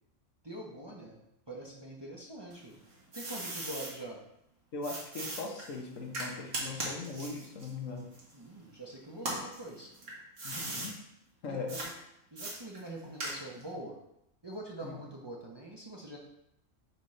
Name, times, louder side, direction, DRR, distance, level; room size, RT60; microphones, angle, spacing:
voice 1, 0.4-2.8 3.1-4.2 8.3-9.9 10.5-10.9 11.5-11.9 12.3-14.0 14.4-16.2, right 1 dB, 20° right, -3 dB, 0.8 m, -44 dB
sound 1, 2.5-3.9 4.8-8.7 9.1-10.9 11.7-11.9 12.4-13.7, right 2 dB, 65° right, 1.9 m, -39 dB
voice 2, 4.7-8.1 10.4-10.9 11.4-11.7 14.8-15.0, left 3 dB, 75° left, 1 dB, 1.4 m, -40 dB
8.7 x 4.1 x 3.2 m, 0.81 s
omnidirectional pair, 1.4 m